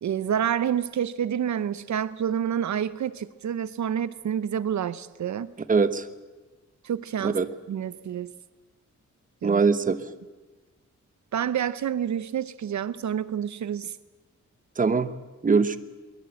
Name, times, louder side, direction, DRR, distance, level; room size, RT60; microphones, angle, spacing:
voice 1, 0.0-5.5 6.8-7.4 7.7-8.3 9.4-9.6 11.3-14.0, right 9 dB, 70° right, 16 dB, 0.7 m, -28 dB
voice 2, 5.7-6.1 7.2-7.5 9.4-10.0 14.8-15.1 15.4-15.8, right 5 dB, 25° right, 12 dB, 0.9 m, -22 dB
22.5 x 20.5 x 7.7 m, 1.2 s
wide cardioid pair, 175°, 30 cm